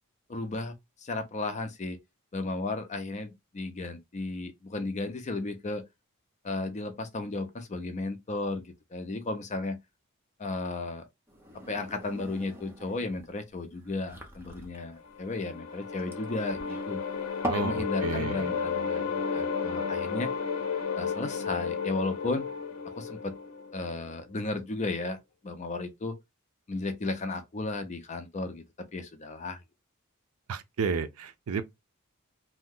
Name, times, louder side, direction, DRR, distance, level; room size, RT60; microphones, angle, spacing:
voice 1, 0.3-2.0 2.3-5.8 6.4-9.8 10.4-11.0 11.7-17.0 17.5-20.3 20.9-22.5 22.9-23.3 23.7-25.2 25.4-26.2 26.7-29.6, left 2 dB, 35° left, 0.5 m, -34 dB
sound 1, 11.3-17.8, right 1 dB, 10° right, 0.7 m, -41 dB
sound 2, 15.0-24.1, left 6 dB, 75° left, 0.6 m, -33 dB
voice 2, 17.5-18.5 30.5-31.6, right 5 dB, 70° right, 0.5 m, -32 dB
2.7 x 2.2 x 3.5 m
head